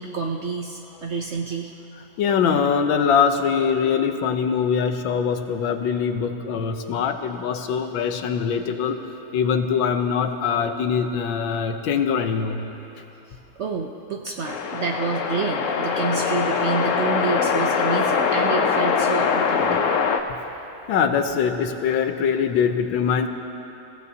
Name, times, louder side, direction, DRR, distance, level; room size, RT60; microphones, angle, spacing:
voice 1, 0.0-1.7 7.7-7.8 13.3-19.7, right 5 dB, 75° right, 2 dB, 0.6 m, -29 dB
voice 2, 2.2-9.0 9.3-12.6 19.5-19.8 20.9-23.3, left 6 dB, 80° left, 7 dB, 1.6 m, -23 dB
sound 1, 14.4-20.2, left 5 dB, 60° left, 0.8 m, -22 dB
28.0 x 16.0 x 2.8 m, 3.0 s
omnidirectional pair, 2.1 m